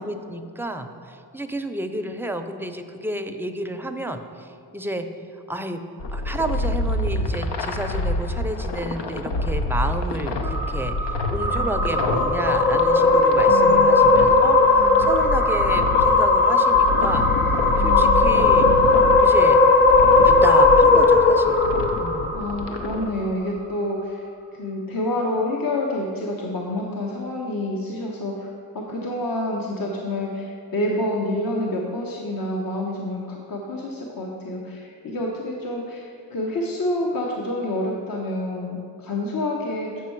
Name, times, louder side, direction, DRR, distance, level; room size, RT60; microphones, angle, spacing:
voice 1, 0.0-5.1 5.5-5.8 6.1-17.3 17.8-18.8 19.2-19.6 20.2-22.3, right 1 dB, 5° right, 6 dB, 0.5 m, -31 dB
sound 1, 6.0-23.1, left 1 dB, 75° left, 0.7 m, -28 dB
sound 2, 10.4-22.9, left 3 dB, 25° left, 0.8 m, -17 dB
voice 2, 13.4-15.1 17.7-19.0 22.3-24.2 24.5-40.0, left 1 dB, 55° left, -1 dB, 1.0 m, -28 dB
8.4 x 5.4 x 4.5 m, 2.4 s
cardioid pair, 60°, 43 cm